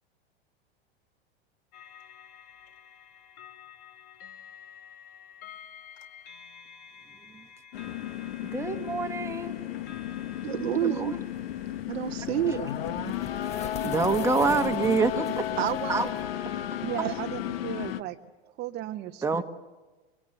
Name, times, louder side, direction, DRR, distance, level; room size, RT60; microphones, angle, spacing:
sound 1, 1.7-11.8, left 7 dB, 50° left, 2.0 m, -50 dB
sound 2, 7.7-18.0, left 11 dB, 65° left, 1.1 m, -33 dB
voice 1, 8.5-9.5 10.8-11.2 13.8-15.4 15.9-16.1 19.2-19.4, right 4 dB, 10° right, 1.3 m, -26 dB
voice 2, 10.4-11.2 11.9-13.2 15.6-16.1 17.0-17.1, right 12 dB, 75° right, 0.8 m, -30 dB
sound 3, 11.2-16.3, left 6 dB, 20° left, 1.0 m, -44 dB
voice 3, 14.5-15.1 16.8-18.2 18.6-19.4, right 14 dB, 30° right, 0.8 m, -36 dB
24.5 x 22.5 x 7.9 m
hypercardioid pair, 100°, 32 cm